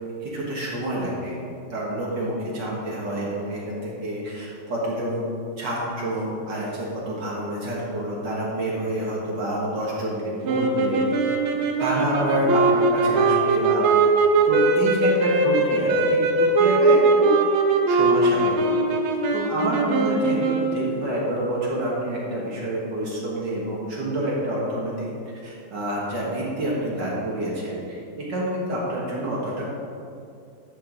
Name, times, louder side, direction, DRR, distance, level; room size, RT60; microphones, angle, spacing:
voice 1, 0.2-1.4 1.7-5.2 5.6-11.1 11.8-13.8 14.4-17.3 17.9-18.7 19.3-25.1 25.4-29.6, right 1 dB, 60° right, -5 dB, 2.1 m, -27 dB
sound 1, 10.4-20.9, right 3 dB, 85° right, 1.7 m, -20 dB
11.5 x 6.8 x 3.9 m, 2.5 s
omnidirectional pair, 2.2 m